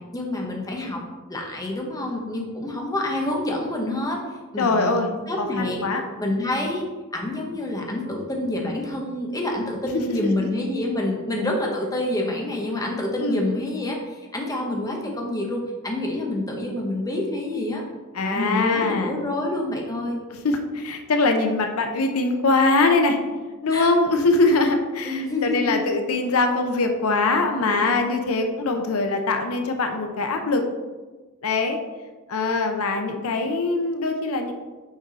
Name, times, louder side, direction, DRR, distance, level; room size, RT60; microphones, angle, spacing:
voice 1, 0.1-1.0 1.3-4.2 4.5-4.9 5.3-5.8 6.2-6.9 7.1-17.8 18.2-20.2 23.7-23.9 25.0-25.8, left 1 dB, 15° left, 0 dB, 1.0 m, -27 dB
voice 2, 4.6-5.1 5.4-6.0 13.2-13.4 18.1-19.2 20.3-23.2 23.6-30.7 31.4-31.8 32.3-34.5, left 3 dB, 80° left, 5 dB, 0.6 m, -22 dB
6.4 x 4.7 x 4.0 m, 1.3 s
head